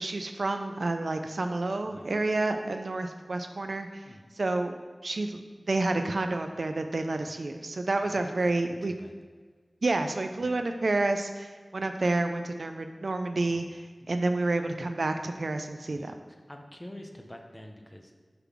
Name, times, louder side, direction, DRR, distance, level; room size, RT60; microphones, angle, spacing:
voice 1, 0.0-4.0 4.3-4.7 5.0-5.4 5.7-8.9 9.8-13.8 14.1-16.1, right 2 dB, 75° right, 6 dB, 0.4 m, -29 dB
voice 2, 1.9-2.2 4.0-4.3 7.1-7.3 8.1-8.3 8.9-9.1 10.4-10.6 13.5-13.7 14.0-14.1 15.9-18.1, left 1 dB, 15° left, 3 dB, 0.7 m, -48 dB
6.7 x 3.8 x 6.1 m, 1.5 s
wide cardioid pair, 65°, 0 cm